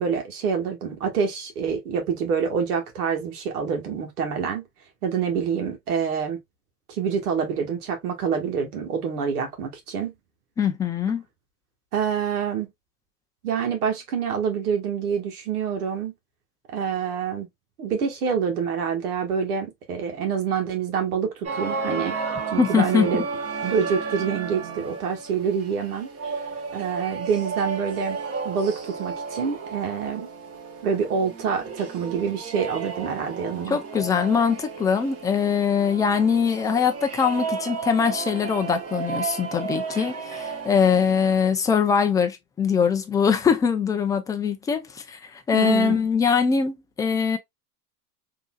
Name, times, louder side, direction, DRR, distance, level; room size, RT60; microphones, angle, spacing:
voice 1, 0.0-4.6 5.0-6.4 6.9-10.1 11.9-12.7 13.4-16.1 16.7-17.5 17.8-22.1 22.5-23.2 23.6-26.1 26.7-28.2 28.4-30.3 30.8-33.8 45.5-46.0, right 6 dB, 80° right, 1.4 m, -26 dB
voice 2, 10.6-11.2 22.6-23.1 33.7-47.4, left 6 dB, 10° left, 0.3 m, -22 dB
sound 1, 21.4-41.3, right 5 dB, 30° right, 1.3 m, -33 dB
3.7 x 2.7 x 2.2 m
hypercardioid pair, 110°, 45 cm